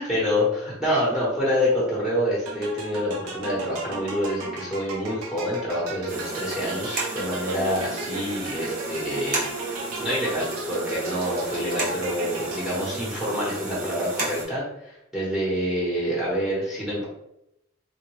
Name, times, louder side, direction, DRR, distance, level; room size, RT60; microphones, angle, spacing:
voice 1, 0.0-17.0, equal, ahead, -7 dB, 0.9 m, -27 dB
sound 1, 2.5-13.1, right 2 dB, 85° right, 0.6 m, -36 dB
sound 2, 6.1-14.4, right 2 dB, 35° right, 0.8 m, -33 dB
3.5 x 2.2 x 3.0 m, 0.83 s
head